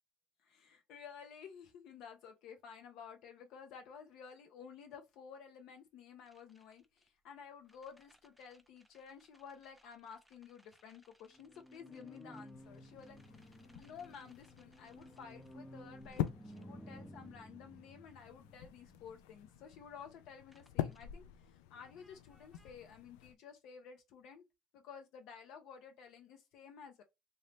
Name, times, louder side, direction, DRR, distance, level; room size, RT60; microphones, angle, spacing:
voice 1, 0.4-24.4 24.7-27.0, left 7 dB, 65° left, 0.7 m, -53 dB
horror theme, 6.3-7.1 7.7-19.9 20.5-21.0 21.7-22.7, equal, ahead, 0.5 m, -56 dB
sound 1, 12.5-23.3, left 12 dB, 85° left, 0.3 m, -46 dB
3.0 x 2.7 x 3.3 m
supercardioid pair, 95°, 0 cm